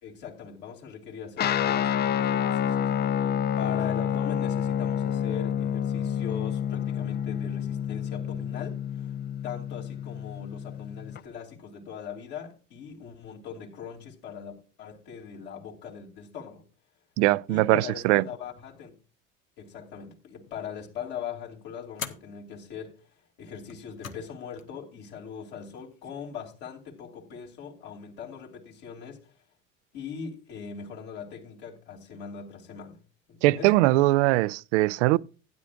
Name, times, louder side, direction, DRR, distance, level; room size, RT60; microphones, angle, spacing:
voice 1, 0.0-2.9 3.2-9.1 9.4-16.6 17.5-18.9 19.6-23.0 23.4-29.3 29.9-33.0 33.3-33.8, left 7 dB, 60° left, 2.8 m, -40 dB
Guitar, 1.4-11.2, left 9 dB, 25° left, 0.4 m, -28 dB
voice 2, 17.2-18.2 33.4-35.2, right 19 dB, 65° right, 0.5 m, -21 dB
sound 1, 20.4-20.8 21.9-22.3 23.6-24.3 24.6-24.7 25.8-26.3, left 7 dB, 85° left, 1.1 m, -41 dB
15.5 x 10.0 x 2.5 m
figure-of-eight pair, 65°, 39 cm